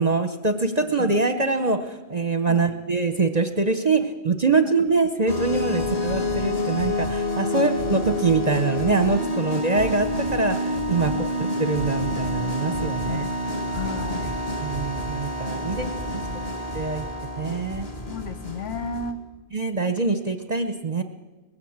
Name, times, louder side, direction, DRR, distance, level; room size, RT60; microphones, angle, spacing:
voice 1, 0.0-13.2 14.6-15.9 16.3-16.4 16.7-17.0 17.4-17.9 19.5-21.0, right 3 dB, 35° right, 8 dB, 0.9 m, -24 dB
sound 1, 5.3-19.1, left 1 dB, 25° left, 1.6 m, -28 dB
voice 2, 13.0-13.3 13.7-14.4 15.7-16.5 18.1-19.2, left 4 dB, 60° left, 10 dB, 1.3 m, -35 dB
20.0 x 15.5 x 8.7 m, 1.2 s
omnidirectional pair, 1.5 m